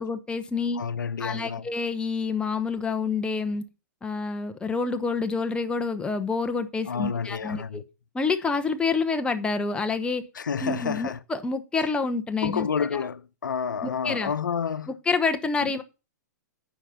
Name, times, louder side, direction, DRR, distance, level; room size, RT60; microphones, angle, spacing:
voice 1, 0.0-0.8 1.2-3.6 4.0-7.8 8.1-10.2 10.6-13.1 13.8-14.3 14.9-15.8, left 4 dB, 10° left, 0.8 m, -28 dB
voice 2, 0.8-1.6 6.9-7.8 10.4-11.2 12.4-14.9, left 6 dB, 85° left, 0.7 m, -29 dB
9.1 x 5.0 x 5.7 m
hypercardioid pair, 120°, 10 cm